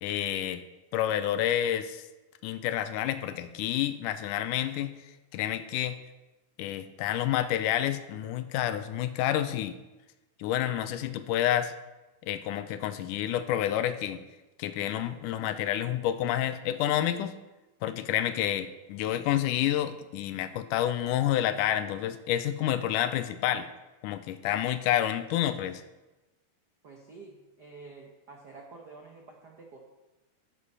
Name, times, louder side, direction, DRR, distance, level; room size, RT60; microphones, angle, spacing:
voice 1, 0.0-0.6 0.9-2.0 2.4-5.0 5.3-6.0 6.6-9.8 10.4-11.7 12.2-14.2 14.6-17.3 17.8-23.7 24.0-25.8, left 11 dB, 85° left, 11 dB, 2.1 m, -29 dB
voice 2, 26.8-29.8, right 3 dB, 85° right, 0 dB, 0.9 m, -49 dB
11.5 x 7.7 x 5.5 m, 1.1 s
omnidirectional pair, 3.7 m